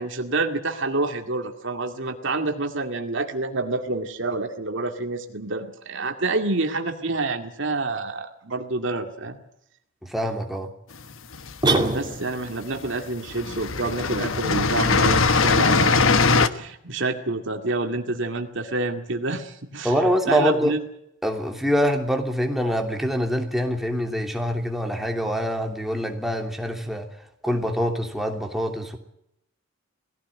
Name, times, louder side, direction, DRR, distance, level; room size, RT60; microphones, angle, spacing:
voice 1, 0.0-9.4 11.9-19.9 20.3-20.8, right 3 dB, 65° right, 2.2 m, -28 dB
voice 2, 10.0-10.7 19.8-20.7 21.2-27.1 27.4-29.0, equal, ahead, 3.0 m, -25 dB
sound 1, 11.1-12.0 12.8-13.0 13.3-16.5, left 4 dB, 80° left, 1.2 m, -20 dB
sound 2, 11.6-12.5, right 2 dB, 25° right, 2.5 m, -23 dB
20.5 x 16.5 x 9.1 m
head